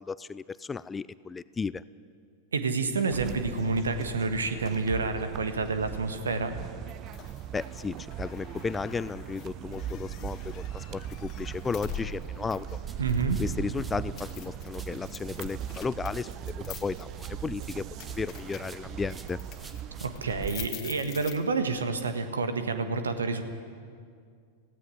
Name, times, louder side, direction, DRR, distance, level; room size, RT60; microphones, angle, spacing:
voice 1, 0.0-1.8 7.5-12.7 13.4-17.9 18.2-19.4, left 4 dB, 15° left, 18 dB, 0.4 m, -34 dB
voice 2, 2.5-6.5 13.0-13.4 20.0-23.4, right 4 dB, 70° right, 9 dB, 1.5 m, -29 dB
sound 1, 3.1-20.7, right 11 dB, 35° right, 0.5 m, -39 dB
sound 2, 6.9-21.8, left 8 dB, 35° left, 1.7 m, -46 dB
sound 3, 12.9-14.4 14.7-18.3 18.6-20.6, right 3 dB, 15° right, 1.5 m, -52 dB
17.5 x 16.0 x 9.9 m, 2.2 s
figure-of-eight pair, 90°, 0 cm